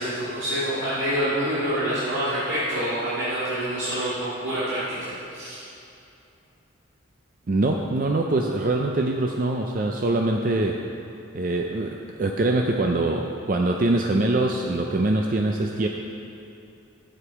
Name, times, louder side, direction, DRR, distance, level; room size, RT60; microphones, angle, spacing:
voice 1, 0.0-5.6, equal, 80° right, -12 dB, 2.2 m, -27 dB
voice 2, 7.5-10.8 11.3-15.9, right 2 dB, 45° right, 2 dB, 0.4 m, -23 dB
9.9 x 7.9 x 4.8 m, 2.7 s
head